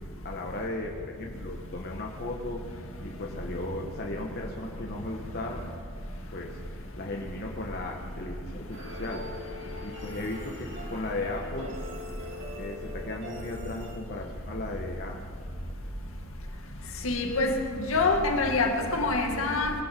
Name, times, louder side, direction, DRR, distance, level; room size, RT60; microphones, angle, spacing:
voice 1, 0.2-2.6 3.0-5.6 6.3-9.2 9.8-11.7 12.6-15.2, left 2 dB, 50° left, -1 dB, 1.4 m, -36 dB
sound 1, 8.7-14.0, left 1 dB, 60° right, 3.0 m, -43 dB
voice 2, 17.0-17.5 17.9-19.7, left 3 dB, 75° left, 2 dB, 2.0 m, -25 dB
21.5 x 13.0 x 4.6 m, 2.5 s
head